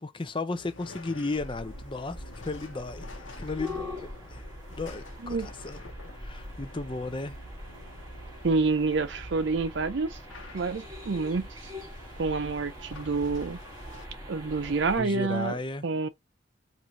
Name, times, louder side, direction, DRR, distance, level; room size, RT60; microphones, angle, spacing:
voice 1, 0.0-3.1 3.4-4.4 4.7-5.8 6.2-7.4 15.0-15.8, left 3 dB, 25° left, 0.5 m, -34 dB
sound 1, 0.5-14.1, left 1 dB, 90° left, 1.1 m, -50 dB
sound 2, 1.3-15.0, left 1 dB, 20° right, 2.4 m, -43 dB
voice 2, 8.4-10.2 10.5-11.5 12.2-13.6 14.3-15.6 15.8-16.1, right 4 dB, 65° right, 0.6 m, -28 dB
4.9 x 2.6 x 2.7 m
head